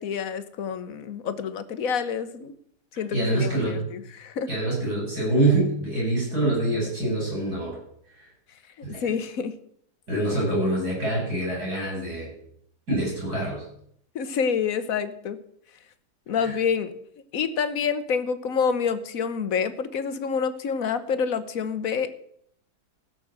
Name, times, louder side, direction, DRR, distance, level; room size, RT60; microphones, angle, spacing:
voice 1, 0.0-2.5 3.0-4.5 8.9-9.5 14.1-15.4 16.3-16.9 17.3-22.1, left 6 dB, 60° left, 12 dB, 1.3 m, -27 dB
voice 2, 3.1-3.9 4.5-7.8 8.8-9.1 10.1-12.3 12.9-13.6 16.3-16.6, right 2 dB, 65° right, -3 dB, 8.0 m, -25 dB
15.5 x 6.8 x 7.5 m, 0.68 s
omnidirectional pair, 1.8 m